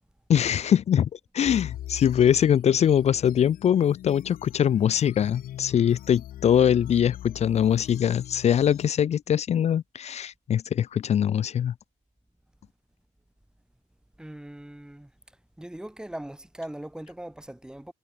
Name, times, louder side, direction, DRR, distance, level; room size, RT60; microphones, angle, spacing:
voice 1, 0.3-1.1 1.3-11.7, left 9 dB, 40° left, 0.6 m, -22 dB
sound 1, 1.4-8.8, left 12 dB, 60° left, 1.0 m, -41 dB
voice 2, 14.2-15.1 15.6-17.9, right 1 dB, 5° right, 2.7 m, -40 dB
cardioid pair, 110°, 17 cm